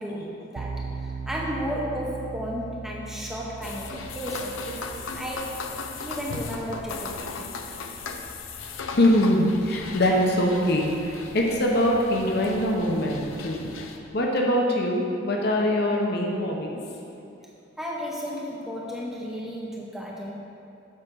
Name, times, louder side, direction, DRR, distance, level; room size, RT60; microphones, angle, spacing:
voice 1, 0.0-5.7 6.0-7.5 17.8-20.3, equal, ahead, -4 dB, 0.7 m, -34 dB
sound 1, 0.6-9.4, right 4 dB, 85° right, 0.4 m, -40 dB
sound 2, 3.6-14.0, left 4 dB, 85° left, 0.6 m, -37 dB
voice 2, 8.9-13.7 14.1-16.8, left 1 dB, 55° left, -1 dB, 1.0 m, -23 dB
7.3 x 5.0 x 6.4 m, 2.7 s
head